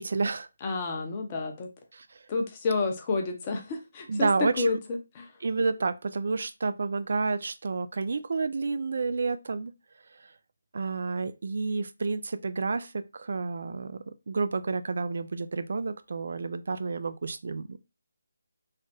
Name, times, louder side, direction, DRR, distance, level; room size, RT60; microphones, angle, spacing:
voice 1, 0.0-0.5 1.9-2.2 4.1-4.7 5.4-9.7 10.7-17.8, right 4 dB, 55° right, 0.3 m, -30 dB
voice 2, 0.6-1.7 2.3-4.8 5.1-5.3, left 3 dB, 25° left, 0.7 m, -29 dB
3.2 x 2.1 x 2.7 m
figure-of-eight pair, 155°, 0 cm